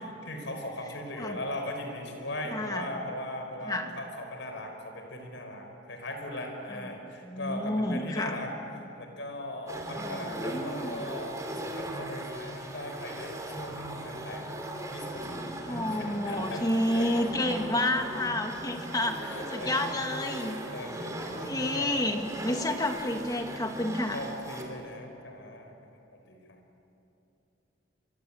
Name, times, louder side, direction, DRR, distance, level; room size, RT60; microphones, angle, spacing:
voice 1, 0.0-8.5 9.0-14.5 14.9-17.3 18.4-18.8 19.2-21.9 22.3-22.7 24.1-25.7 26.1-26.4, left 1 dB, 70° left, 4 dB, 5.1 m, -39 dB
voice 2, 2.5-2.9 3.7-3.9 7.2-8.4 10.0-10.1 10.4-11.0 15.7-20.6 21.4-24.2, left 1 dB, 20° left, 4 dB, 1.8 m, -30 dB
sound 1, 9.7-24.8, right 1 dB, 15° right, 3.1 m, -38 dB
24.5 x 24.5 x 8.9 m, 2.8 s
head